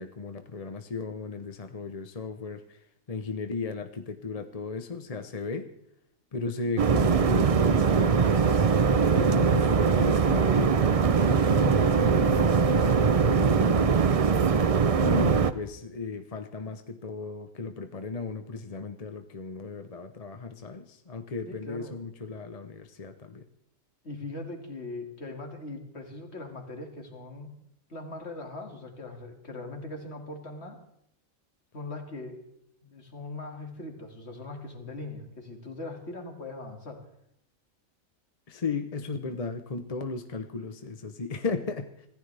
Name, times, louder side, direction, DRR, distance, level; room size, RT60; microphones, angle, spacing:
voice 1, 0.0-2.8 3.1-5.7 6.3-8.7 9.1-12.6 13.3-14.3 14.9-23.4 38.5-42.1, left 3 dB, 30° left, 7 dB, 0.8 m, -35 dB
sound 1, 6.8-15.5, right 5 dB, 45° right, 0.4 m, -22 dB
voice 2, 21.5-22.0 24.0-27.5 27.9-30.8 31.7-32.4 32.8-37.1, left 2 dB, 50° left, 3 dB, 2.5 m, -40 dB
25.5 x 15.0 x 3.4 m, 0.73 s
omnidirectional pair, 1.4 m